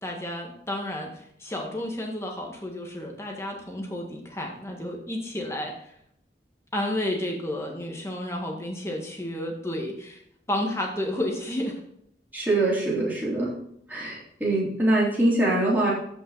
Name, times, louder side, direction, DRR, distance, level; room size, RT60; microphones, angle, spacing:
voice 1, 0.0-5.9 6.7-10.2 10.5-11.8, left 1 dB, 15° left, 1 dB, 1.7 m, -31 dB
voice 2, 12.3-13.5 13.9-15.9, right 1 dB, 10° right, -7 dB, 3.5 m, -23 dB
14.0 x 5.4 x 4.1 m, 0.71 s
head